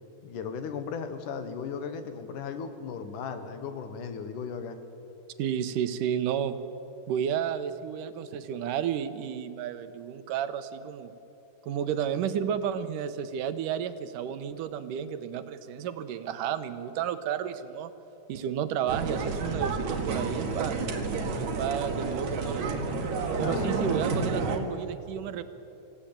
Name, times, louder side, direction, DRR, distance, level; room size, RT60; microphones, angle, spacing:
voice 1, 0.2-4.8 23.4-24.4, left 6 dB, 75° left, 8 dB, 2.9 m, -37 dB
voice 2, 5.4-6.6 7.1-11.1 11.6-17.9 18.3-20.8 21.4-22.9 23.4-25.4, right 9 dB, 90° right, 10 dB, 2.6 m, -32 dB
sound 1, 18.9-24.6, right 4 dB, 65° right, 3.2 m, -30 dB
26.5 x 16.0 x 8.9 m, 2.9 s
omnidirectional pair, 3.7 m